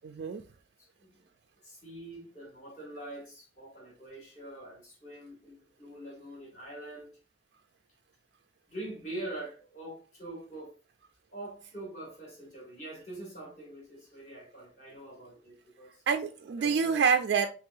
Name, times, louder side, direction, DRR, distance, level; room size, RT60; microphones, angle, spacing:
voice 1, 0.0-0.4 16.1-17.5, right 6 dB, 65° right, 0.3 m, -27 dB
voice 2, 0.8-1.3 1.6-7.2 8.7-10.8 11.3-16.0 16.6-17.0, right 1 dB, 40° left, 2.2 m, -44 dB
5.4 x 3.0 x 2.6 m
head